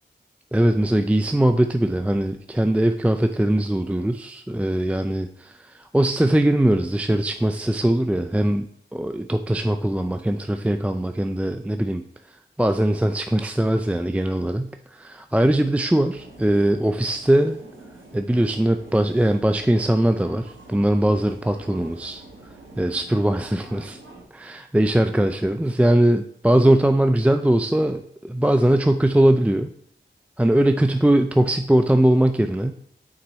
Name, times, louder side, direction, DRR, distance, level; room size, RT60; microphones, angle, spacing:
voice 1, 0.5-8.7 8.9-12.0 12.6-17.6 18.1-22.2 22.8-24.0 24.3-29.7 30.4-32.7, right 1 dB, 5° right, 7 dB, 0.4 m, -21 dB
sound 1, 16.1-24.2, right 2 dB, 85° right, 1.5 m, -46 dB
6.1 x 4.6 x 4.2 m, 0.65 s
cardioid pair, 45°, 19 cm